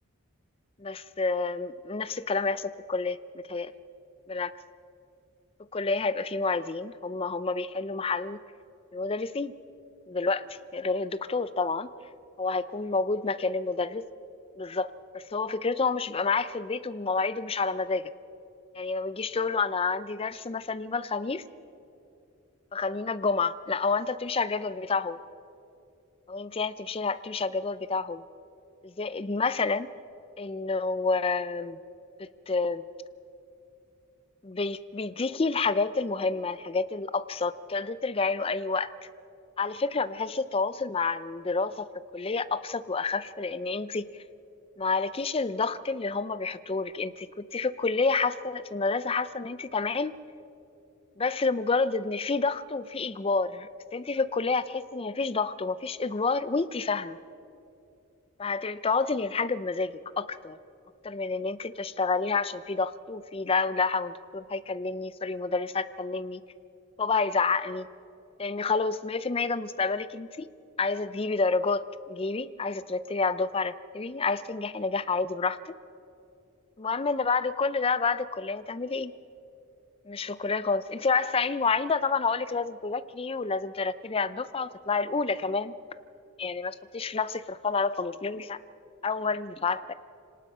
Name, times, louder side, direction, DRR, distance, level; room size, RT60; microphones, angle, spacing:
voice 1, 0.8-3.7 4.3-4.5 5.7-8.4 8.9-9.5 10.1-11.9 12.4-14.0 14.6-18.1 18.7-21.4 22.7-25.2 26.3-28.2 28.8-29.9 30.4-31.8 32.2-32.8 34.4-38.9 39.6-41.9 42.1-44.1 44.8-50.2 51.2-57.2 58.4-60.6 61.0-66.4 67.0-67.9 68.4-70.5 70.8-75.7 76.8-79.1 80.1-85.7 86.4-88.6 89.0-89.9, left 4 dB, 25° left, 15 dB, 0.5 m, -29 dB
26.0 x 18.5 x 5.5 m, 2.7 s
head